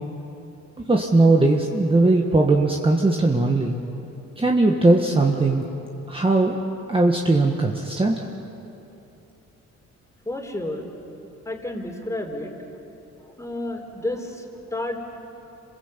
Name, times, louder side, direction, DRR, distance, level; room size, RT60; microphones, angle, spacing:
voice 1, 0.9-3.8 4.4-5.6 6.1-6.6 6.9-8.2, right 2 dB, 20° right, 0 dB, 1.7 m, -19 dB
voice 2, 10.3-10.9 11.4-12.5 13.4-15.0, left 1 dB, 10° left, 3 dB, 4.0 m, -31 dB
28.0 x 21.0 x 8.3 m, 3.0 s
cardioid pair, 90°, 30 cm